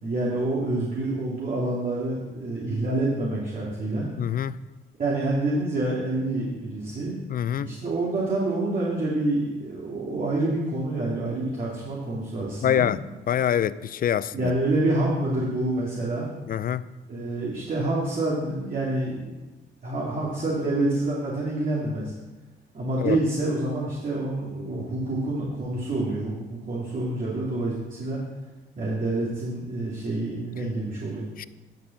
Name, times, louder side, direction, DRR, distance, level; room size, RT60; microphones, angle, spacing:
voice 1, 0.0-4.1 5.0-7.2 7.6-12.9 14.3-16.3 17.1-19.5 19.8-22.1 22.7-28.2 28.8-31.5, right 2 dB, 45° right, 2.6 m, -27 dB
voice 2, 4.2-4.6 7.3-7.7 12.6-13.0 13.3-14.5 16.5-16.9 23.0-23.2 31.4-31.5, left 9 dB, 45° left, 0.4 m, -25 dB
10.5 x 5.5 x 7.2 m
cardioid pair, 90°, 20 cm